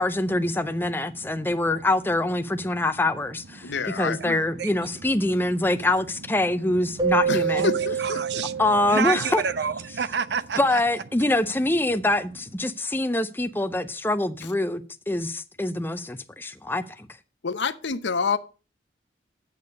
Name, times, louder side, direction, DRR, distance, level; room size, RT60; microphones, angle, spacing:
voice 1, 0.0-7.7 8.6-9.4 10.6-14.8 15.1-17.1, left 2 dB, 10° left, 0.6 m, -25 dB
voice 2, 1.3-1.6 2.7-2.8 3.6-4.7 5.6-5.8 6.7-10.8, right 6 dB, 65° right, 0.5 m, -31 dB
voice 3, 3.6-4.4 7.3-8.4 17.4-18.4, left 5 dB, 75° left, 0.7 m, -28 dB
Keyboard (musical), 7.0-9.7, right 6 dB, 20° right, 1.0 m, -27 dB
8.8 x 6.7 x 5.2 m
head